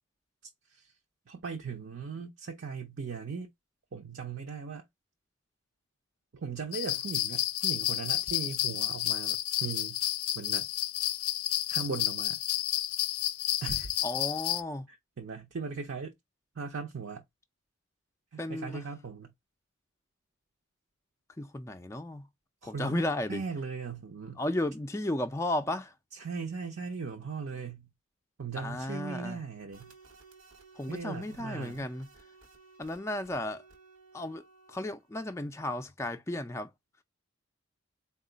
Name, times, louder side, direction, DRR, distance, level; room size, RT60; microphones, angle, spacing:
voice 1, 1.3-3.5 3.9-4.8 6.3-10.0 10.3-10.7 11.7-12.4 13.6-13.9 14.9-16.1 16.6-17.2 18.3-19.3 22.6-23.0 23.3-24.4 26.1-27.9 28.4-29.9 30.9-31.8, right 5 dB, 55° right, 0.5 m, -38 dB
sound 1, 6.7-14.6, left 13 dB, 85° left, 0.4 m, -31 dB
voice 2, 14.0-14.9 18.4-18.9 21.4-22.3 22.6-23.4 24.4-25.9 28.6-29.4 30.8-32.1 32.8-33.6 34.1-34.4 34.7-36.7, left 1 dB, 15° left, 0.3 m, -34 dB
sound 2, 29.7-35.1, right 4 dB, 85° right, 1.3 m, -57 dB
4.0 x 2.3 x 3.8 m
head